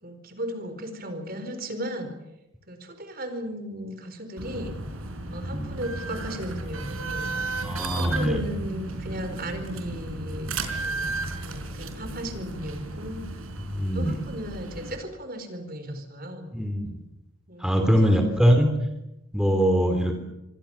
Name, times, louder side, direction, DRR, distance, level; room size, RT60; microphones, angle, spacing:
voice 1, 0.0-2.1 2.7-4.8 5.3-7.3 7.9-11.1 11.4-13.4 13.9-16.5 17.5-18.2, equal, 45° right, 8 dB, 4.6 m, -36 dB
sound 1, 4.4-15.0, right 2 dB, 85° right, 4.9 m, -34 dB
voice 2, 7.6-8.5 13.7-14.2 16.5-16.9 17.6-18.7 19.3-20.2, equal, 5° right, 4 dB, 3.5 m, -22 dB
27.5 x 24.0 x 7.3 m, 0.92 s
head